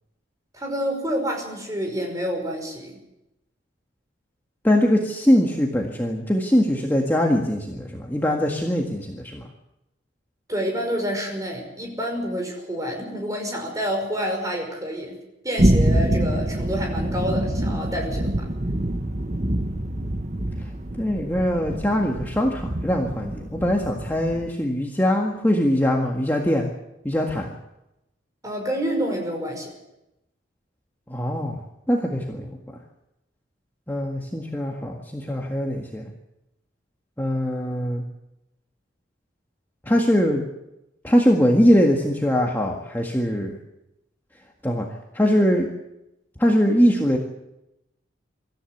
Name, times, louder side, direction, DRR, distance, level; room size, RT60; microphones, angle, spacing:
voice 1, 0.5-3.0 10.5-15.2 15.4-18.5 28.4-29.7, equal, 20° right, 2 dB, 5.4 m, -28 dB
voice 2, 4.6-9.5 20.9-26.7 27.0-27.6 31.1-31.6 31.9-32.6 33.9-36.1 37.2-38.0 39.9-40.4 41.0-43.6 44.6-44.9 45.1-45.7 46.4-47.2, equal, 10° left, 0 dB, 1.7 m, -22 dB
sound 1, 15.6-24.5, right 1 dB, 35° right, 1.1 m, -25 dB
24.5 x 14.0 x 8.0 m, 0.89 s
head